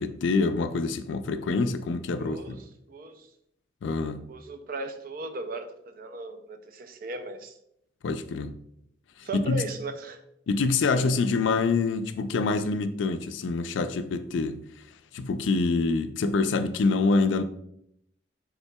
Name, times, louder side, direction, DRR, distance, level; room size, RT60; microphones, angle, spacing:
voice 1, 0.0-2.6 3.8-4.2 8.0-8.5 9.2-9.6 10.5-14.6 15.1-17.4, left 3 dB, 85° left, 0.4 m, -26 dB
voice 2, 2.2-3.3 4.2-7.5 9.2-10.2, right 2 dB, 50° right, 0.4 m, -37 dB
5.5 x 3.7 x 2.2 m
head